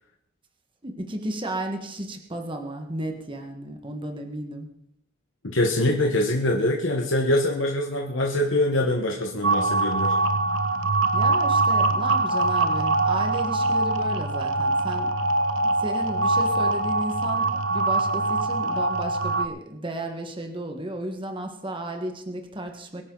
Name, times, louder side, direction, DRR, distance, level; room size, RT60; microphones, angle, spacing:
voice 1, 0.8-4.7 11.1-15.1 15.6-23.0, right 1 dB, 25° right, 4 dB, 1.7 m, -33 dB
voice 2, 5.5-10.2, left 1 dB, 70° left, 1 dB, 1.5 m, -24 dB
sound 1, 9.4-19.5, right 2 dB, 70° right, 0.9 m, -23 dB
22.5 x 10.5 x 4.1 m, 0.78 s
head